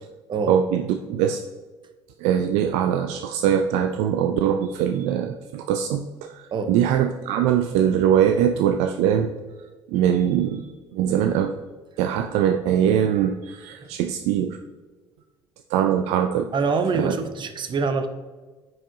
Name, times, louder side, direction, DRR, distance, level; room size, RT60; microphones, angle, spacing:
voice 1, 0.5-1.4 2.2-9.3 9.9-10.6 10.9-11.5 12.0-14.6 15.7-16.5 16.9-17.2, right 9 dB, 65° right, 7 dB, 0.4 m, -22 dB
voice 2, 16.5-18.1, right 4 dB, 40° right, 9 dB, 0.8 m, -25 dB
9.6 x 4.7 x 2.7 m, 1.3 s
hypercardioid pair, 55°, 12 cm